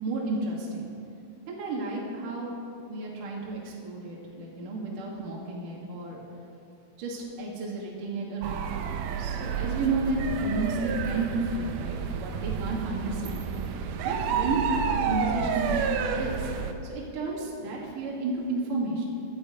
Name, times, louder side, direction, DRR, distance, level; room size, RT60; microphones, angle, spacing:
voice 1, 0.0-0.9 1.5-2.6 2.9-6.2 7.0-8.6 9.2-13.4 14.0-15.8 16.2-16.5 16.8-19.1, right 2 dB, 55° right, -4 dB, 3.5 m, -32 dB
sound 1, 8.4-16.7, right 7 dB, 90° right, 1.8 m, -30 dB
18.0 x 11.5 x 5.3 m, 2.7 s
omnidirectional pair, 5.0 m